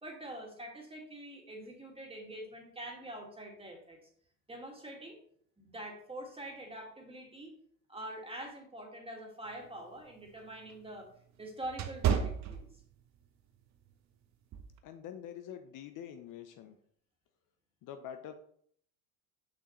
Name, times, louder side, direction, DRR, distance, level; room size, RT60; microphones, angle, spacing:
voice 1, 0.0-4.0 4.5-5.2 5.6-7.6 7.9-11.1 11.4-12.7, right 1 dB, 15° right, 1 dB, 2.1 m, -45 dB
sound 1, 9.5-13.2 13.7-13.9 14.5-14.8, right 8 dB, 45° right, 0.9 m, -34 dB
voice 2, 14.8-16.8 17.8-18.3, left 9 dB, 50° left, 8 dB, 0.8 m, -45 dB
6.8 x 5.7 x 3.2 m, 0.64 s
hypercardioid pair, 80°, 41 cm